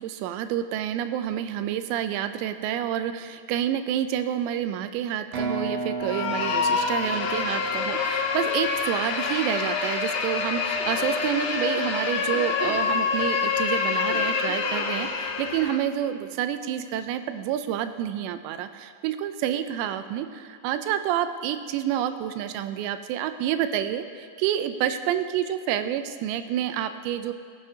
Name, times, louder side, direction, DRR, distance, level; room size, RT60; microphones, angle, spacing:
voice 1, 0.0-27.3, right 10 dB, 90° right, 10 dB, 2.8 m, -28 dB
sound 1, 5.3-9.1, right 3 dB, 65° right, 2.8 m, -34 dB
sound 2, 6.0-15.9, left 5 dB, 85° left, 1.8 m, -26 dB
sound 3, 9.3-16.1, equal, 20° right, 1.2 m, -45 dB
19.5 x 9.7 x 2.8 m, 2.2 s
omnidirectional pair, 4.9 m